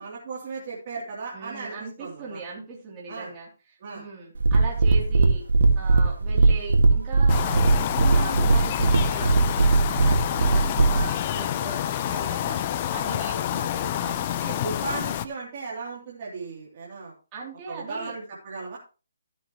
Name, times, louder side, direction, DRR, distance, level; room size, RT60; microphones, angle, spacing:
voice 1, 0.0-2.4 3.1-3.3 3.8-4.0 10.3-10.4 11.3-11.4 13.6-13.7 14.4-17.1 17.7-18.8, right 4 dB, 40° right, -6 dB, 3.2 m, -36 dB
voice 2, 1.3-3.5 3.9-5.4 5.8-14.3 17.3-18.1, right 4 dB, 20° right, -4 dB, 3.2 m, -39 dB
sound 1, 4.4-11.1, right 3 dB, 80° right, 2.1 m, -19 dB
sound 2, 7.3-15.3, left 11 dB, 30° left, 0.6 m, -28 dB
14.0 x 7.9 x 3.1 m, 0.33 s
hypercardioid pair, 160°, 0 cm